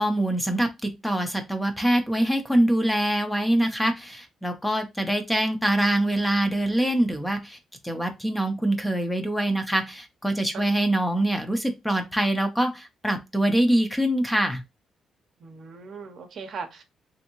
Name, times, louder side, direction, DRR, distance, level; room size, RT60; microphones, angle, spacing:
voice 1, 0.0-7.6 7.8-14.6, right 1 dB, 5° left, 0.6 m, -24 dB
voice 2, 15.4-16.8, right 5 dB, 55° right, 0.7 m, -38 dB
3.4 x 2.6 x 2.9 m
cardioid pair, 125°, 0 cm